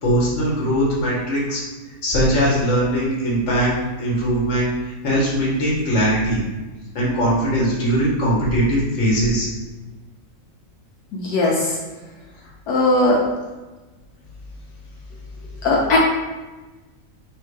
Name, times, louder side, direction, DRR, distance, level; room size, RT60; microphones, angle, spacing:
voice 1, 0.0-1.6 2.0-3.7 4.0-6.4 6.9-9.5, equal, 50° left, -5 dB, 1.4 m, -20 dB
voice 2, 11.1-11.5 12.7-13.2 15.6-16.0, left 2 dB, 80° left, -4 dB, 1.2 m, -17 dB
3.6 x 2.5 x 4.5 m, 1.2 s
omnidirectional pair, 1.6 m